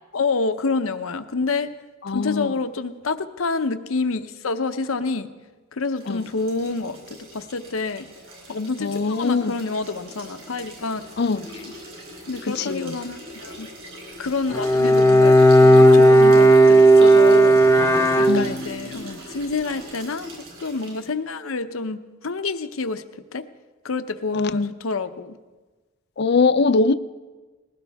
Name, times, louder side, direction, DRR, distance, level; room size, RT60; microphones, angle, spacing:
voice 1, 0.1-1.7 2.1-5.3 5.7-8.1 8.5-11.0 11.5-11.7 12.3-13.7 14.2-17.6 18.2-20.3 20.6-23.0 23.3-23.5 23.8-25.4, left 4 dB, 90° left, 10 dB, 0.8 m, -28 dB
voice 2, 2.0-2.5 6.1-6.3 8.8-9.6 11.2-11.5 12.4-13.0 18.3-18.6 24.3-24.7 26.2-26.9, left 4 dB, 55° left, 13 dB, 0.5 m, -22 dB
sound 1, 6.0-21.1, equal, 50° right, 5.3 m, -41 dB
Bowed string instrument, 14.5-18.9, right 1 dB, 15° left, 0.7 m, -13 dB
20.0 x 16.5 x 3.5 m, 1.3 s
head